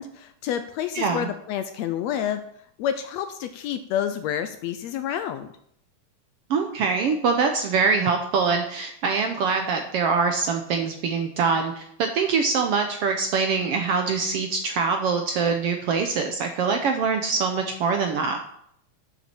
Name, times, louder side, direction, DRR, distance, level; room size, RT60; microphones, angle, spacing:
voice 1, 0.0-2.4 2.8-5.5, left 9 dB, 75° left, 9 dB, 1.6 m, -29 dB
voice 2, 0.9-1.3 6.5-18.4, right 5 dB, 70° right, 5 dB, 1.5 m, -24 dB
12.0 x 7.2 x 4.4 m, 0.70 s
omnidirectional pair, 3.5 m